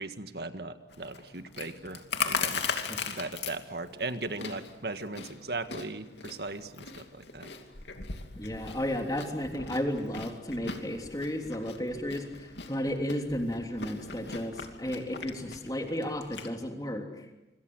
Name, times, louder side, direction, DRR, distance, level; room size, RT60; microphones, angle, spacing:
voice 1, 0.0-2.6 3.1-7.5, right 2 dB, 60° right, 9 dB, 1.8 m, -38 dB
Chewing mastication, 0.9-16.5, left 5 dB, 75° left, 2.7 m, -39 dB
voice 2, 8.4-17.1, left 1 dB, 20° left, 3 dB, 3.3 m, -33 dB
26.5 x 26.0 x 8.0 m, 1.0 s
head